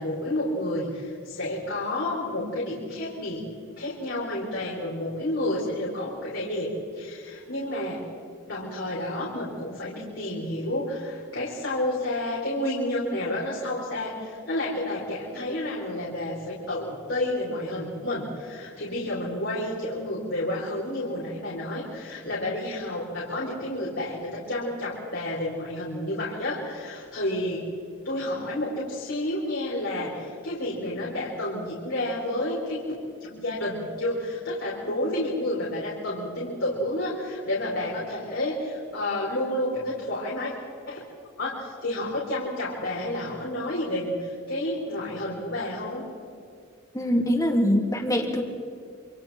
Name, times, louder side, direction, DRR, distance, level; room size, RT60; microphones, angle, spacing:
voice 1, 0.0-3.4 3.8-6.7 6.9-8.0 8.5-27.7 28.0-40.5 40.9-41.0 41.4-46.0, left 1 dB, 65° left, -6 dB, 5.1 m, -30 dB
voice 2, 46.9-48.4, equal, 15° left, 1 dB, 3.2 m, -23 dB
28.0 x 27.0 x 4.5 m, 2.4 s
head